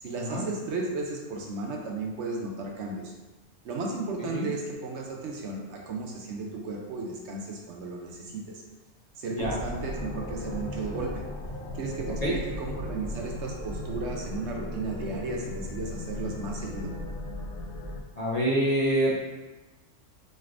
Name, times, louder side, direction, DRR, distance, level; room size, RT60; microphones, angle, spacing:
voice 1, 0.0-3.1 3.6-8.6 9.2-11.2 11.7-16.9, right 3 dB, 65° right, 0 dB, 0.8 m, -34 dB
sound 1, 9.4-18.0, left 1 dB, 75° left, 1.0 m, -36 dB
voice 2, 18.2-19.3, right 1 dB, 45° left, -7 dB, 0.5 m, -26 dB
4.0 x 3.2 x 2.5 m, 1.1 s
omnidirectional pair, 1.3 m